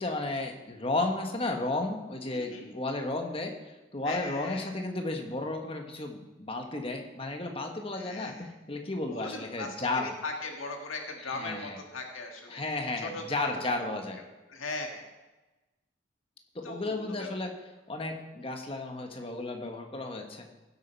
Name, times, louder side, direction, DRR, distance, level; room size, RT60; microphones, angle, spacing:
voice 1, 0.0-10.1 11.3-11.8 12.5-14.2 16.5-17.5 17.9-20.5, left 2 dB, 30° left, 4 dB, 1.3 m, -33 dB
voice 2, 2.3-2.7 4.0-4.7 7.9-8.5 9.1-9.8 10.0-13.9 14.3-15.1 16.6-17.4 18.1-18.5, left 2 dB, 85° left, 2 dB, 1.9 m, -40 dB
16.0 x 8.3 x 4.6 m, 1.1 s
head